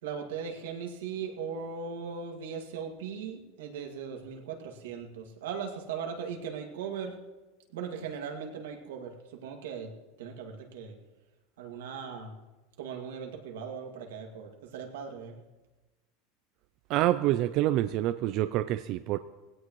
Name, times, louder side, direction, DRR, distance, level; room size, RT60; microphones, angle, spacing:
voice 1, 0.0-7.2 7.7-9.9 10.2-10.9 11.6-12.4 12.8-15.3, right 6 dB, 90° right, 2 dB, 2.2 m, -38 dB
voice 2, 16.9-19.2, right 14 dB, 45° right, 11 dB, 0.4 m, -27 dB
19.5 x 16.5 x 3.2 m, 1.2 s
supercardioid pair, 150°, 0 cm